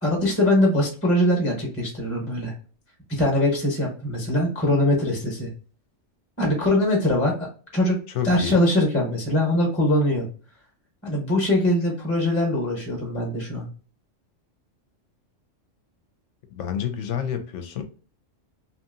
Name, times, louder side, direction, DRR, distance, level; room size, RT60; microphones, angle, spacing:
voice 1, 0.0-2.5 3.1-5.5 6.4-7.5 7.7-8.0 8.2-10.3 11.0-13.7, left 1 dB, 15° left, 0.8 m, -22 dB
voice 2, 8.1-8.6 16.5-17.8, left 8 dB, 70° left, 0.9 m, -28 dB
2.8 x 2.7 x 2.5 m
omnidirectional pair, 1.3 m